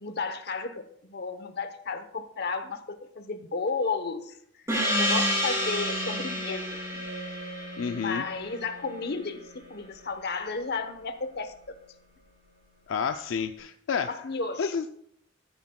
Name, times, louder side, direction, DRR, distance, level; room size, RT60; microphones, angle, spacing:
voice 1, 0.0-4.4 4.7-6.7 6.9-7.0 7.9-11.8 14.1-14.7, left 4 dB, 55° left, 9 dB, 0.9 m, -33 dB
Gong, 4.7-9.7, equal, 15° right, 2.8 m, -30 dB
voice 2, 7.8-8.3 12.9-14.1 14.6-14.8, left 6 dB, 80° left, 8 dB, 0.4 m, -29 dB
14.0 x 9.4 x 2.3 m, 0.70 s
head